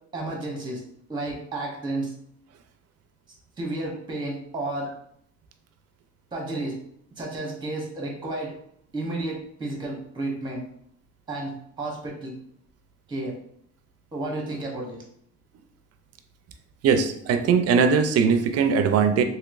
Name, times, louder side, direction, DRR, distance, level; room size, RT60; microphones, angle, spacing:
voice 1, 0.1-0.8 1.1-2.1 3.6-4.9 6.3-6.7 7.2-8.5 8.9-10.6 11.3-12.3 13.1-13.3 14.1-15.0, right 2 dB, 15° right, -1 dB, 0.9 m, -31 dB
voice 2, 16.8-19.2, right 6 dB, 55° right, 8 dB, 0.4 m, -20 dB
2.9 x 2.8 x 2.5 m, 0.68 s
cardioid pair, 90°, 30 cm